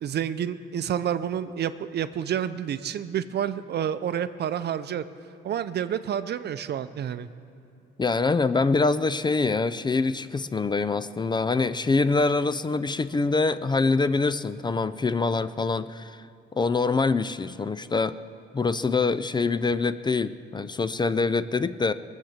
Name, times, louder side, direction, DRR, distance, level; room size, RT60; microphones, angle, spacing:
voice 1, 0.0-5.0 5.4-7.3, right 9 dB, 55° right, 12 dB, 0.6 m, -29 dB
voice 2, 8.0-16.2 16.5-18.2 18.5-21.9, left 4 dB, 20° left, 13 dB, 0.4 m, -25 dB
20.5 x 7.4 x 7.3 m, 2.7 s
cardioid pair, 90°, 20 cm